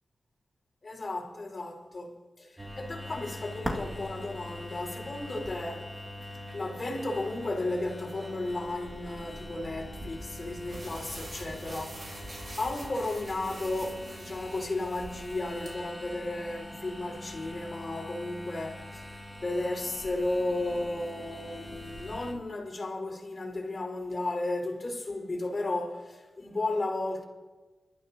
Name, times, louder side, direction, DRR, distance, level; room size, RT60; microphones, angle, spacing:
voice 1, 0.8-5.9 6.5-27.2, left 2 dB, 40° left, 5.1 m, -34 dB
sound 1, 2.6-22.3, left 1 dB, 10° right, 2.2 m, -42 dB
sound 2, 10.4-15.7, right 2 dB, 40° right, 4.3 m, -46 dB
30.0 x 13.5 x 3.0 m
wide cardioid pair, 90°, 0 cm